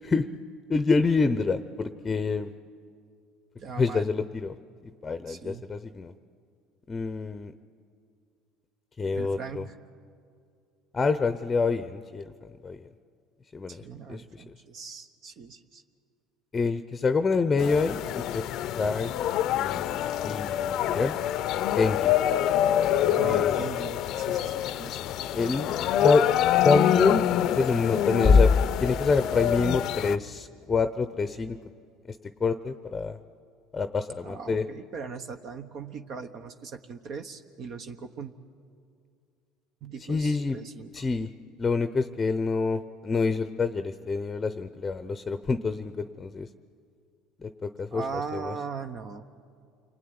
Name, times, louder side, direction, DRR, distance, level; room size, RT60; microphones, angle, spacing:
voice 1, 0.7-2.5 3.8-4.6 5.0-6.1 6.9-7.5 9.0-9.6 10.9-12.3 12.6-12.9 13.5-14.4 16.5-19.1 19.5-19.9 20.2-21.1 21.8-22.1 23.0-23.7 25.3-26.2 26.6-27.2 27.6-31.6 32.1-33.2 33.7-34.7 40.1-40.6 40.9-41.3 41.6-46.5 47.4-48.5, left 4 dB, 20° left, 11 dB, 0.8 m, -26 dB
voice 2, 3.6-4.1 5.3-5.6 9.1-9.7 13.7-15.8 23.2-25.3 34.2-38.3 39.8-40.9 47.9-49.3, right 5 dB, 50° right, 7 dB, 1.2 m, -39 dB
sound 1, 17.6-30.2, left 11 dB, 60° left, 0.6 m, -26 dB
28.5 x 21.5 x 9.6 m, 2.3 s
supercardioid pair, 115°, 0 cm